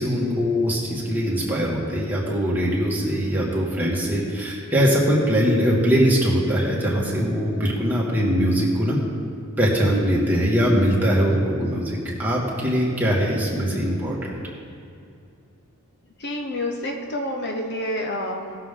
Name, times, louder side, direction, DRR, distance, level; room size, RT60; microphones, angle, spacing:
voice 1, 0.0-9.0 9.6-14.3, equal, 10° right, -5 dB, 2.1 m, -21 dB
voice 2, 16.2-18.6, left 1 dB, 50° left, 2 dB, 0.9 m, -28 dB
18.5 x 6.8 x 3.8 m, 2.5 s
head